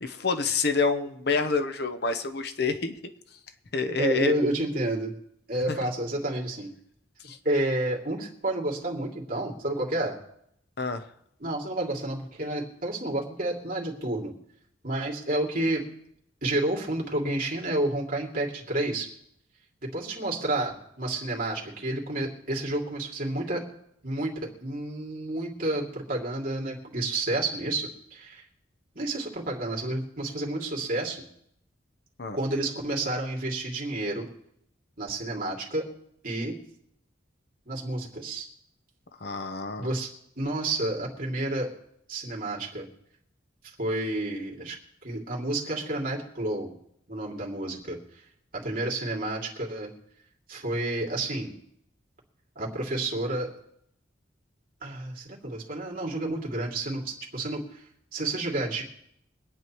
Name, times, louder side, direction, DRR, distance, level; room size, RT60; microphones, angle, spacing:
voice 1, 0.0-3.0 3.7-4.3 7.2-7.4 10.8-11.0 32.2-32.4 39.2-39.9, left 4 dB, 55° left, 8 dB, 0.8 m, -27 dB
voice 2, 3.9-5.1 5.5-6.7 7.4-10.2 11.4-14.3 14.8-15.8 16.4-19.1 19.9-23.6 24.0-28.4 28.9-31.2 32.3-34.3 35.0-35.9 36.2-36.6 37.7-38.5 39.8-40.1 40.4-41.7 42.1-42.9 43.8-46.7 47.1-48.0 48.6-49.9 50.5-51.5 52.6-53.5 54.8-57.8 58.1-58.8, right 1 dB, 45° right, -3 dB, 2.7 m, -30 dB
24.5 x 9.4 x 3.1 m, 0.73 s
head